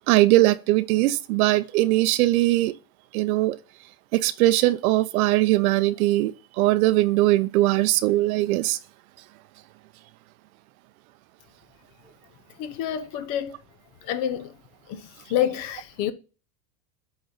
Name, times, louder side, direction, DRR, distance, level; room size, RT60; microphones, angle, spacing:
voice 1, 0.1-2.7 3.1-3.6 4.1-8.8, right 17 dB, 75° right, 0.6 m, -20 dB
voice 2, 12.6-13.5 14.0-14.5 14.9-15.0 15.3-16.1, left 10 dB, 55° left, 0.8 m, -27 dB
7.9 x 4.0 x 3.9 m
supercardioid pair, 140°, 44 cm